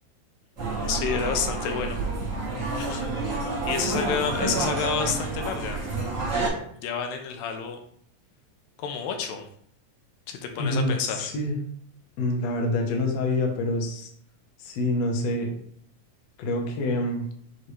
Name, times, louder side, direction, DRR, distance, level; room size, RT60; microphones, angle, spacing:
sound 1, 0.6-6.5, right 3 dB, 25° right, 1.9 m, -29 dB
voice 1, 0.9-2.0 2.7-3.0 3.7-5.8 6.7-7.8 8.8-9.5 10.3-11.3, left 6 dB, 90° left, 5 dB, 2.6 m, -29 dB
voice 2, 10.6-11.6 12.2-14.1 14.6-15.5 16.4-17.2, left 2 dB, 65° left, 1 dB, 1.9 m, -26 dB
8.0 x 3.7 x 3.2 m, 0.63 s
omnidirectional pair, 4.0 m